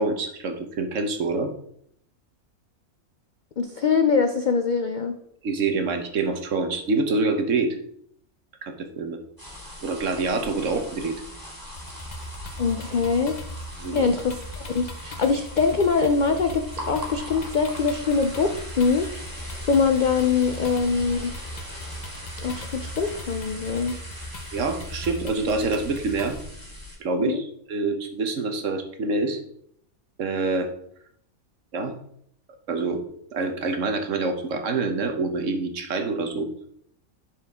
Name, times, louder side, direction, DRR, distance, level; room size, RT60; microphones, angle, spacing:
voice 1, 0.0-1.5 5.4-7.8 8.6-9.2 9.8-11.2 13.8-14.1 24.5-26.3 27.0-29.4 30.2-30.7 31.7-31.9 32.7-33.0 33.3-36.5, right 3 dB, 60° right, 6 dB, 1.2 m, -26 dB
voice 2, 3.6-5.1 12.6-13.4 13.9-19.1 19.5-21.3 22.4-24.0 27.2-27.4, left 5 dB, 85° left, 6 dB, 0.4 m, -23 dB
sound 1, 9.4-27.0, left 1 dB, 15° right, 2.3 m, -40 dB
sound 2, 11.8-26.4, equal, 35° left, 0.9 m, -39 dB
10.5 x 4.7 x 3.5 m, 0.68 s
omnidirectional pair, 1.5 m